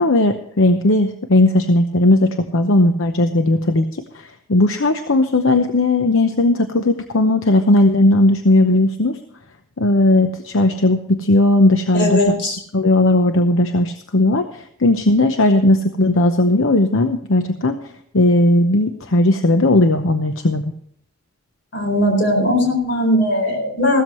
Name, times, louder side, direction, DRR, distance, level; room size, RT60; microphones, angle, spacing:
voice 1, 0.0-9.2 9.8-12.2 12.7-17.8 18.1-20.7, left 2 dB, 80° left, 7 dB, 0.9 m, -16 dB
voice 2, 11.9-12.6 21.7-24.0, left 1 dB, 55° left, 3 dB, 4.4 m, -18 dB
16.0 x 13.0 x 3.1 m, 0.66 s
head